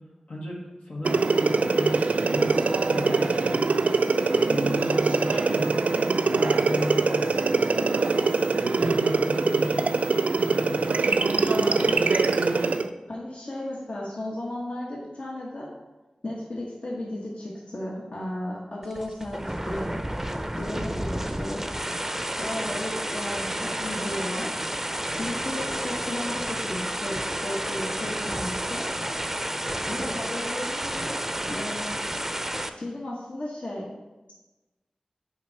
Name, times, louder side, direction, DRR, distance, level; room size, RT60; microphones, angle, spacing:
voice 1, 0.3-3.7 4.5-7.3 8.7-9.9 10.5-11.0, equal, 85° left, -3 dB, 1.6 m, -34 dB
sound 1, 1.0-12.9, right 4 dB, 85° right, 0.3 m, -23 dB
voice 2, 11.5-12.2 13.1-15.7 16.2-20.0 20.6-21.6 22.4-24.6 25.1-28.9 29.9-31.2 31.5-32.0 32.6-33.9, left 1 dB, 70° left, -5 dB, 1.3 m, -34 dB
sound 2, 18.8-32.7, right 1 dB, 15° right, 0.5 m, -31 dB
7.4 x 4.6 x 4.5 m, 1.1 s
wide cardioid pair, 55°, 2 cm